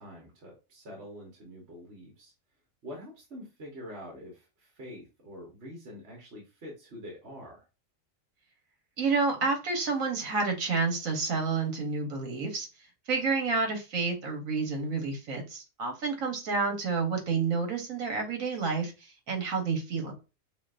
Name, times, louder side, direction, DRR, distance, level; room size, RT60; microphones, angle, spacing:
voice 1, 0.0-2.3 2.8-7.7, equal, 55° right, -2 dB, 1.4 m, -45 dB
voice 2, 9.0-12.7 13.1-20.2, right 4 dB, 75° right, 3 dB, 1.5 m, -29 dB
5.7 x 2.2 x 2.5 m, 0.29 s
omnidirectional pair, 1.4 m